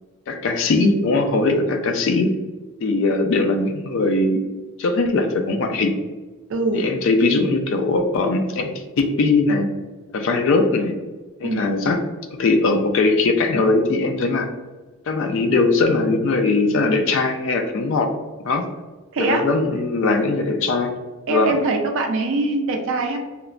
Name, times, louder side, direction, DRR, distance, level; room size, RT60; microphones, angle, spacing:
voice 1, 0.3-2.3 2.8-4.4 4.8-6.0 6.7-9.7 10.1-11.0 11.4-12.0 12.4-14.5 15.1-18.1 18.5-18.7 19.2-20.9 21.3-21.6, left 3 dB, 60° left, 5 dB, 0.3 m, -20 dB
voice 2, 6.5-6.9 11.4-11.7 19.1-19.5 21.3-23.2, right 3 dB, 65° right, 3 dB, 0.3 m, -23 dB
3.0 x 2.1 x 2.4 m, 1.3 s
head